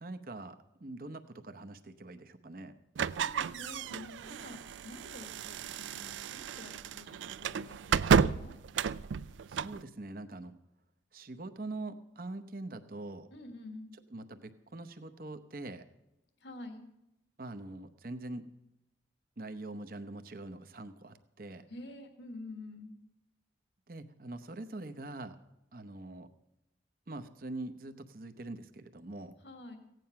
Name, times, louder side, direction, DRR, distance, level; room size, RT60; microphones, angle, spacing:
voice 1, 0.0-2.7 9.5-10.5 11.1-13.3 14.1-15.9 17.4-18.4 19.4-21.6 23.9-25.4 25.7-26.3 27.1-29.3, right 2 dB, 50° right, 9 dB, 0.8 m, -43 dB
voice 2, 3.0-8.5 13.3-13.9 16.4-16.9 21.7-23.0 29.4-29.8, left 2 dB, 75° left, 6 dB, 1.7 m, -48 dB
sound 1, 3.0-9.8, right 6 dB, 90° right, 0.4 m, -32 dB
16.0 x 9.2 x 5.7 m, 0.89 s
head